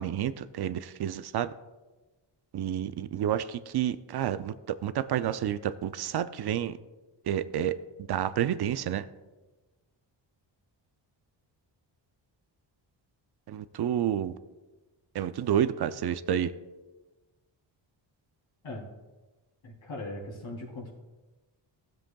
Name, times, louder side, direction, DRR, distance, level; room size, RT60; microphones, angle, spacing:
voice 1, 0.0-1.5 2.5-4.5 4.8-6.8 7.3-7.8 8.1-9.0 13.5-14.3 15.1-16.5, right 10 dB, 60° right, 13 dB, 0.5 m, -29 dB
voice 2, 19.6-20.9, left 2 dB, 75° left, -3 dB, 3.3 m, -39 dB
15.5 x 7.7 x 2.3 m, 1.2 s
cardioid pair, 105°, 46 cm